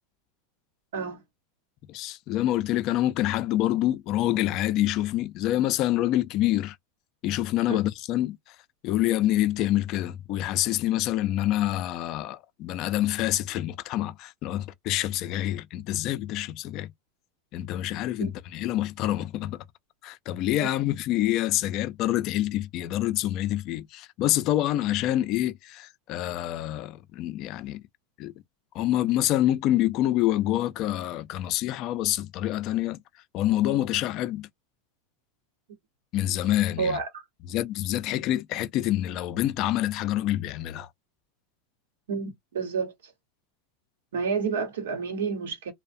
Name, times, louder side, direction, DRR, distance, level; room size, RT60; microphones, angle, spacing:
voice 1, 1.9-6.8 7.2-8.6 8.8-16.9 17.5-19.7 20.0-27.8 28.2-28.3 28.7-33.0 33.3-34.5 36.1-37.0 37.5-40.9, left 14 dB, 50° left, 0.3 m, -26 dB
voice 2, 36.8-37.2 42.1-42.9 44.1-45.7, right 5 dB, 90° right, 0.9 m, -29 dB
2.5 x 2.0 x 2.4 m
supercardioid pair, 125°, 0 cm